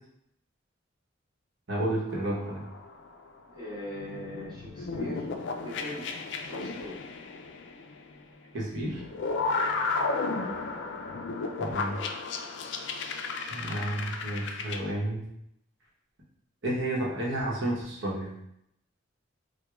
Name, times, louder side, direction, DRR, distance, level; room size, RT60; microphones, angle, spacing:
voice 1, 1.7-2.6 8.5-9.0 11.6-12.0 13.5-15.2 16.6-18.3, right 1 dB, 70° right, -4 dB, 0.9 m, -31 dB
sound 1, 2.1-3.3 3.9-8.2 8.8-14.8, left 3 dB, 60° left, 0.3 m, -34 dB
voice 2, 3.5-5.2 5.6-6.1 6.5-7.0 9.6-9.9 11.9-12.1, left 1 dB, 20° right, -9 dB, 1.3 m, -40 dB
4.7 x 2.1 x 2.3 m, 0.79 s
head